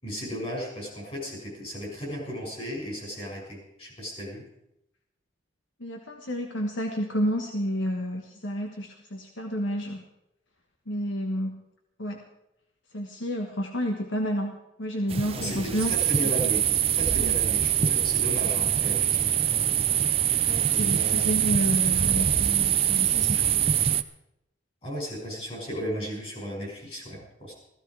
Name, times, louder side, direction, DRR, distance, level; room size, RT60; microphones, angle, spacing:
voice 1, 0.0-4.4 15.3-19.4 20.7-21.5 24.8-27.5, equal, 35° left, -2 dB, 6.6 m, -35 dB
voice 2, 5.8-10.0 10.9-11.6 12.0-12.2 12.9-15.9 17.1-17.3 20.5-23.6, equal, 90° left, 3 dB, 1.4 m, -30 dB
sound 1, 15.1-24.0, right 10 dB, 30° right, 0.4 m, -24 dB
15.5 x 15.0 x 4.7 m, 0.84 s
head